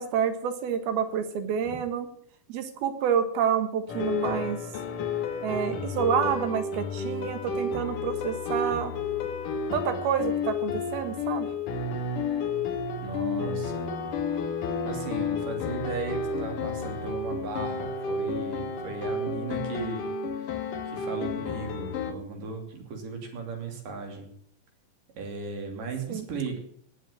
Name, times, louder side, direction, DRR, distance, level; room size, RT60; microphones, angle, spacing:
voice 1, 0.0-2.1 2.5-4.6 5.4-8.9 9.7-11.5 26.1-26.3, right 8 dB, 90° right, 9 dB, 3.5 m, -28 dB
sound 1, 3.9-22.1, left 4 dB, 65° left, 2.9 m, -31 dB
voice 2, 13.0-14.1 14.8-24.3 25.2-26.6, right 4 dB, 65° right, 4 dB, 4.5 m, -36 dB
18.5 x 7.7 x 9.3 m, 0.64 s
omnidirectional pair, 4.2 m